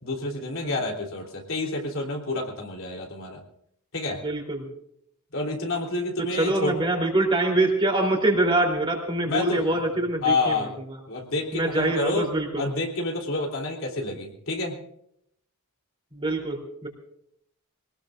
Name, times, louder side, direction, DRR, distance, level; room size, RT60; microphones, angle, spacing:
voice 1, 0.0-3.4 3.9-4.2 5.3-6.7 9.3-9.8 10.2-10.7 11.1-12.3 12.6-14.8, left 2 dB, 65° left, 0 dB, 3.6 m, -28 dB
voice 2, 4.2-4.7 6.2-10.7 11.5-12.7 16.1-16.9, right 2 dB, 25° right, 2 dB, 3.5 m, -24 dB
24.5 x 19.0 x 2.6 m, 0.72 s
head